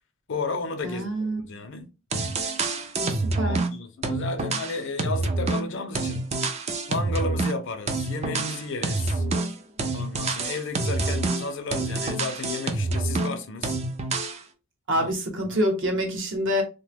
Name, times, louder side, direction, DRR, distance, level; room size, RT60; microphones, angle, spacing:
voice 1, 0.3-1.9 3.4-6.3 6.9-9.2 9.9-13.8 14.9-15.1 15.4-15.6, left 3 dB, 60° left, 0.5 m, -33 dB
voice 2, 0.8-1.6 3.0-3.7 14.9-16.6, equal, 65° right, 0.9 m, -26 dB
sound 1, 1.8-1.9 2.1-3.7 4.0-7.6 7.9-13.4 13.6-14.4, right 3 dB, 30° right, 0.4 m, -27 dB
2.7 x 2.2 x 3.4 m
head